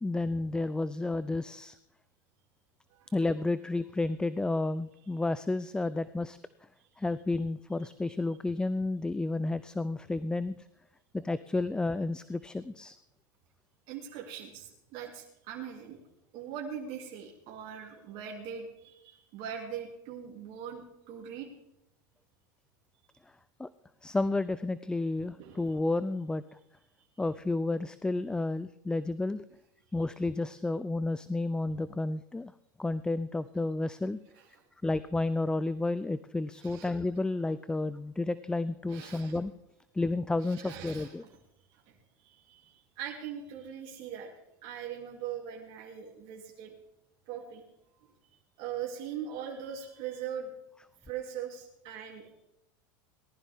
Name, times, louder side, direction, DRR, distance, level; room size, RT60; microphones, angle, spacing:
voice 1, 0.0-1.8 3.1-6.4 7.0-10.5 11.1-13.0 23.6-23.7 24.0-26.4 27.2-29.4 29.9-32.5 32.8-34.2 34.8-39.5 39.9-41.2, left 2 dB, 5° left, 15 dB, 0.4 m, -31 dB
voice 2, 13.9-16.0 16.3-21.5 25.2-25.7 34.3-34.4 36.6-36.9 38.9-39.4 40.4-41.3 41.9-42.0 42.2-44.3 44.6-46.7 47.3-47.6 48.6-50.5 51.0-52.3, right 8 dB, 55° right, -1 dB, 2.8 m, -41 dB
19.0 x 12.0 x 3.6 m, 0.85 s
supercardioid pair, 110°, 11 cm